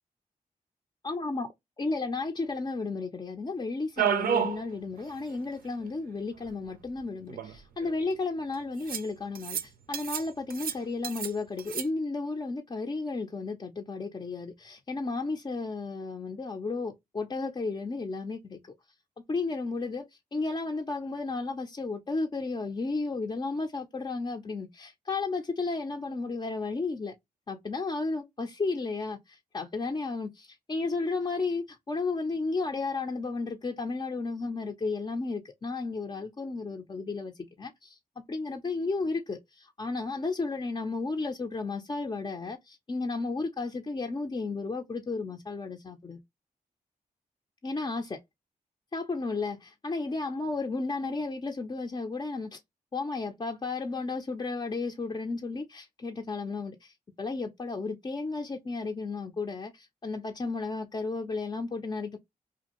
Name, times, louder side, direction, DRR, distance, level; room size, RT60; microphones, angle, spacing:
voice 1, 1.0-1.5 1.8-18.6 19.3-20.1 20.3-27.1 27.5-37.3 37.6-38.0 38.3-46.2 47.6-48.2 48.9-52.6 52.9-62.2, left 3 dB, 30° left, 0.5 m, -33 dB
sound 1, 4.0-4.6 5.0-5.1 5.3-5.4 6.5-6.6 7.3-7.9 8.9-9.1 9.3-9.6 9.9-10.3 10.5-11.3 11.6-11.8, right 9 dB, 90° right, 0.4 m, -30 dB
2.6 x 2.4 x 2.8 m
cardioid pair, 60°, 15 cm